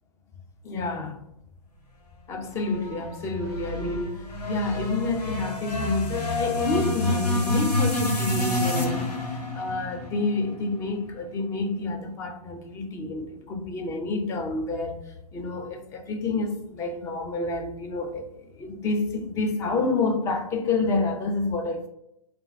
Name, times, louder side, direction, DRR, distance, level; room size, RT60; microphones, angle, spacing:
voice 1, 0.6-1.2 2.3-21.9, left 3 dB, 15° left, 0.5 m, -29 dB
sound 1, 2.5-10.9, left 1 dB, 85° left, 1.4 m, -28 dB
3.5 x 3.4 x 4.1 m
hypercardioid pair, 130°, 20 cm